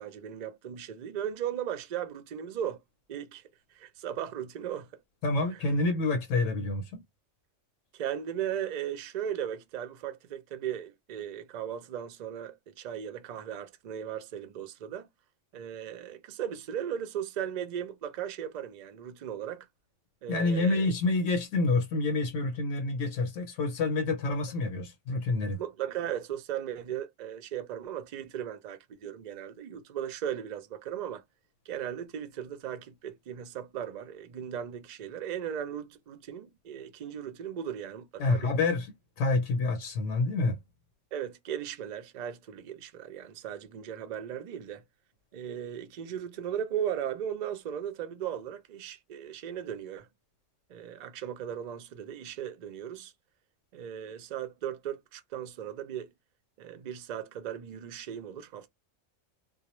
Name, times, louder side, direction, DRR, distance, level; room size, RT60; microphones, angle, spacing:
voice 1, 0.0-2.8 3.1-3.4 3.7-4.9 7.9-15.1 15.5-19.7 20.2-20.9 25.6-31.2 31.7-38.5 41.1-44.8 45.3-50.1 50.7-53.1 53.7-56.1 56.6-58.7, right 9 dB, 80° right, 0.4 m, -37 dB
voice 2, 5.2-7.0 20.3-25.6 38.2-38.9 39.2-40.6, left 3 dB, 75° left, 0.9 m, -28 dB
2.2 x 2.0 x 2.9 m
omnidirectional pair, 1.3 m